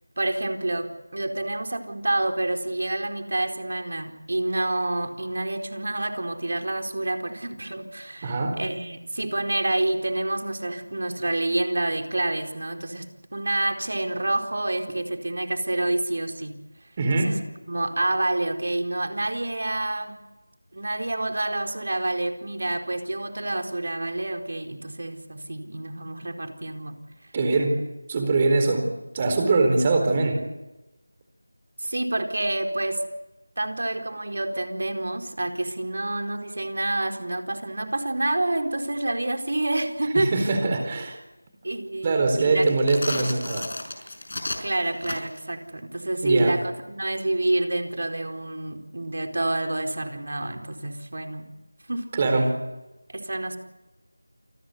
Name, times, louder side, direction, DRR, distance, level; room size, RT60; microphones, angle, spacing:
voice 1, 0.2-13.0 13.3-16.5 17.1-17.4 17.7-20.2 20.7-26.9 31.8-33.0 33.6-40.5 41.6-42.7 44.6-51.5 51.9-52.1 53.1-53.6, right 2 dB, 60° right, 4 dB, 4.5 m, -28 dB
voice 2, 8.2-8.6 17.0-17.3 27.3-27.8 28.1-28.9 29.1-30.4 40.1-41.2 42.0-43.7 46.2-46.6 52.1-52.6, right 3 dB, 20° right, 5 dB, 4.3 m, -22 dB
sound 1, 42.6-45.5, left 2 dB, 50° left, 6.0 m, -33 dB
28.0 x 21.0 x 8.3 m, 1.0 s
figure-of-eight pair, 175°, 0 cm